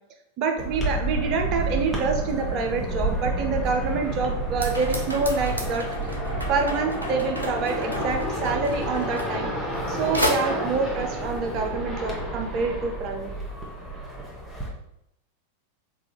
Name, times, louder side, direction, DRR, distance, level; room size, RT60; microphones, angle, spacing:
voice 1, 0.4-5.9 6.5-9.5 9.9-13.3, right 4 dB, 40° right, 4 dB, 0.5 m, -27 dB
sound 1, 0.6-14.7, right 1 dB, ahead, 1.0 m, -30 dB
sound 2, 4.6-9.9 10.1-10.3, left 1 dB, 85° right, 0.6 m, -32 dB
3.8 x 2.4 x 4.3 m, 0.80 s
figure-of-eight pair, 90°, 0 cm